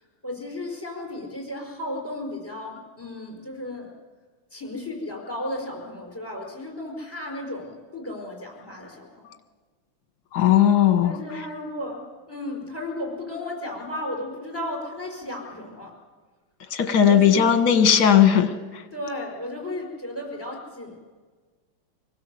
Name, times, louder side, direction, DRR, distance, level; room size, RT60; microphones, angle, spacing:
voice 1, 0.2-3.9 4.5-9.4 11.0-15.9 17.0-17.9 18.9-21.0, left 1 dB, 10° left, 0 dB, 5.0 m, -34 dB
voice 2, 10.3-11.2 16.7-18.5, left 9 dB, 50° left, 8 dB, 1.8 m, -17 dB
25.0 x 16.0 x 7.7 m, 1.4 s
omnidirectional pair, 2.3 m